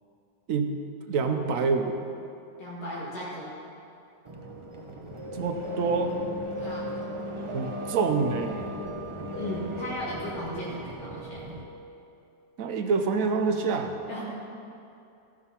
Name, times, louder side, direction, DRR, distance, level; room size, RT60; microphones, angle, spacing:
voice 1, 1.1-2.0 5.3-6.2 7.5-8.7 12.6-14.0, right 4 dB, 70° right, 5 dB, 1.1 m, -27 dB
voice 2, 2.6-3.5 6.6-6.9 9.3-11.4 14.1-14.2, left 1 dB, 85° left, -7 dB, 2.4 m, -36 dB
sound 1, 4.2-11.6, equal, 25° right, 0.8 m, -36 dB
13.5 x 6.1 x 5.7 m, 2.7 s
omnidirectional pair, 1.5 m